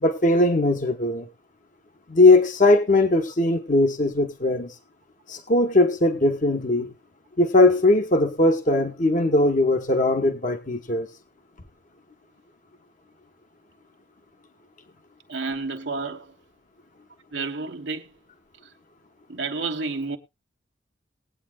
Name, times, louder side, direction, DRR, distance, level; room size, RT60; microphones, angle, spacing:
voice 1, 0.0-1.3 2.1-4.7 5.3-6.9 7.4-11.1, left 2 dB, 45° left, 1.2 m, -19 dB
voice 2, 15.3-16.3 17.3-18.1 19.3-20.2, right 4 dB, 85° right, 1.2 m, -30 dB
20.0 x 8.7 x 2.3 m
head